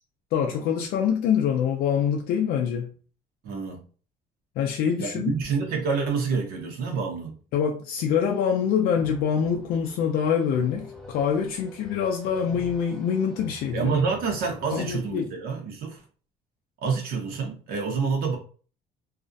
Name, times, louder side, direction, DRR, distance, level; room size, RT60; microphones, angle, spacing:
voice 1, 0.3-2.9 4.6-5.3 7.5-13.9 14.7-15.3, left 7 dB, 70° left, 0.4 m, -25 dB
voice 2, 3.4-3.8 5.0-7.4 13.7-16.0 16.8-18.4, right 5 dB, 70° right, 0.7 m, -27 dB
sound 1, 8.1-15.1, equal, 5° left, 0.4 m, -47 dB
2.4 x 2.1 x 2.5 m
cardioid pair, 145°, 16 cm